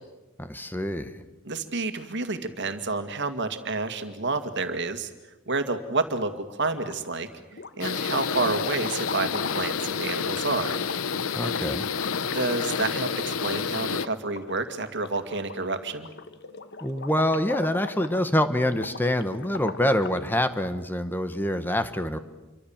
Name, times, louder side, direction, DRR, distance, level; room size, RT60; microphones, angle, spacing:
voice 1, 0.4-1.1 11.4-11.9 16.8-22.2, left 1 dB, 10° left, 10 dB, 1.3 m, -26 dB
voice 2, 1.4-5.1 5.5-7.3 7.8-10.8 12.3-16.1, right 3 dB, 60° right, 9 dB, 2.3 m, -29 dB
sound 1, 6.6-7.2 7.5-20.3, left 4 dB, 55° left, 1.4 m, -41 dB
sound 2, 7.8-14.1, left 6 dB, 90° left, 0.9 m, -29 dB
29.0 x 24.5 x 7.3 m, 1.1 s
head